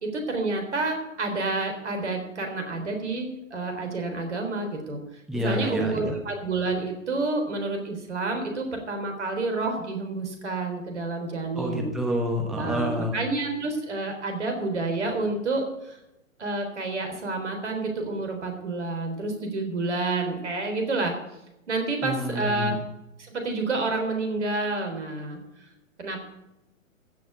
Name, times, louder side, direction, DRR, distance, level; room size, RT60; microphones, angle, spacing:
voice 1, 0.0-5.0 5.3-11.9 12.5-16.0 16.4-21.2 21.7-22.8 23.2-25.4 26.0-26.2, right 3 dB, 60° right, 4 dB, 3.8 m, -29 dB
voice 2, 5.3-6.2 11.6-13.2 22.0-22.8, equal, ahead, 1 dB, 1.3 m, -28 dB
15.0 x 6.4 x 8.5 m, 0.91 s
figure-of-eight pair, 125°, 40 cm